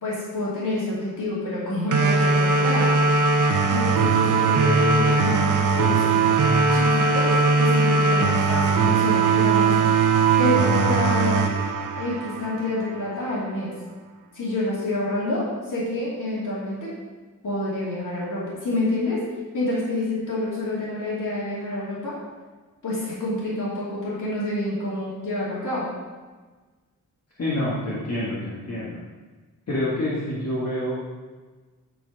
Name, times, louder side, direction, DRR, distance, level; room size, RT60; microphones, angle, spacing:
voice 1, 0.0-2.9 3.7-6.1 6.7-9.8 10.4-11.4 11.9-13.7 14.3-16.9 17.4-19.2 19.5-22.2 22.8-25.9, left 1 dB, 65° left, -7 dB, 2.6 m, -27 dB
sound 1, 1.9-12.9, right 4 dB, 65° right, 0.9 m, -20 dB
voice 2, 27.4-29.0 29.7-30.9, left 1 dB, 50° left, -7 dB, 1.7 m, -27 dB
10.0 x 4.4 x 5.2 m, 1.3 s
wide cardioid pair, 135°, 34 cm